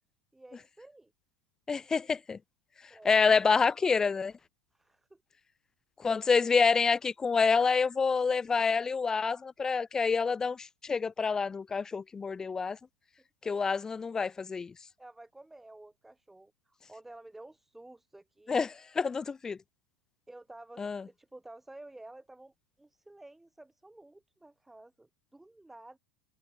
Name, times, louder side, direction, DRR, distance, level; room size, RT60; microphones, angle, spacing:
voice 1, 0.3-1.1 2.9-3.2 4.7-5.2 6.5-6.6 13.4-13.5 15.0-18.6 20.3-26.0, right 2 dB, 5° right, 3.2 m, -52 dB
voice 2, 1.7-2.4 3.0-4.3 6.0-12.8 13.4-14.7 18.5-19.6 20.8-21.0, left 5 dB, 20° left, 0.6 m, -27 dB
figure-of-eight pair, 80°, 3 cm